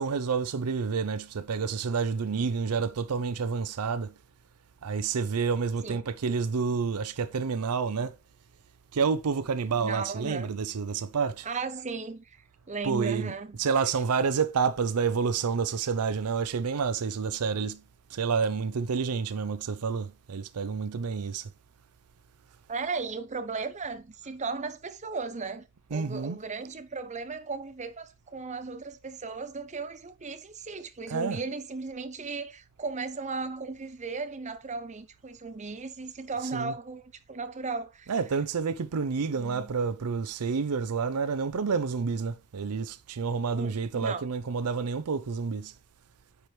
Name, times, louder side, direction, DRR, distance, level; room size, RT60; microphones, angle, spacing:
voice 1, 0.0-4.1 4.8-8.2 8.9-11.5 12.8-17.8 18.1-21.5 25.9-26.4 31.1-31.4 36.4-36.7 38.1-45.7, right 5 dB, 85° right, 0.5 m, -29 dB
voice 2, 9.8-10.6 11.4-12.4 12.7-13.6 22.7-25.7 25.9-37.0 37.3-38.1 39.3-39.7 43.5-44.2, right 4 dB, 30° right, 0.7 m, -36 dB
9.4 x 4.7 x 3.2 m
head